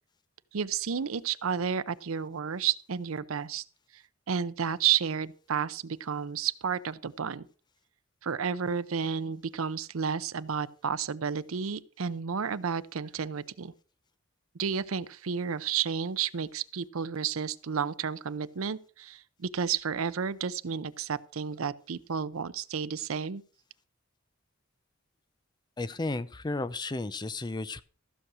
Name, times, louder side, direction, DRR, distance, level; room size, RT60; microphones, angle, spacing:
voice 1, 0.5-3.6 4.3-7.5 8.2-13.7 14.5-23.4, right 7 dB, 75° right, 0.6 m, -31 dB
voice 2, 25.8-27.8, left 2 dB, 20° left, 0.5 m, -33 dB
15.0 x 6.3 x 6.0 m
head